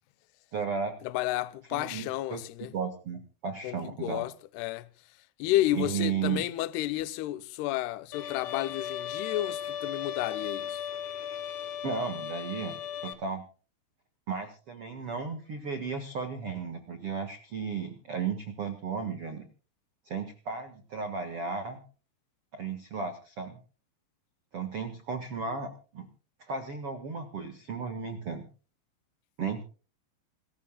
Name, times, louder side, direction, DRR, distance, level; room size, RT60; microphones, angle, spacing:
voice 1, 0.5-0.9 1.7-2.4 2.7-4.2 5.7-6.4 11.8-13.4 14.3-19.4 20.0-21.8 22.5-23.6 24.5-26.1 26.4-28.4 29.4-29.6, right 5 dB, 90° right, 1.2 m, -34 dB
voice 2, 1.0-2.7 3.6-4.9 5.4-10.8, left 15 dB, 80° left, 2.5 m, -31 dB
Bowed string instrument, 8.1-13.1, left 9 dB, 60° left, 2.0 m, -36 dB
27.0 x 14.0 x 2.3 m
omnidirectional pair, 5.6 m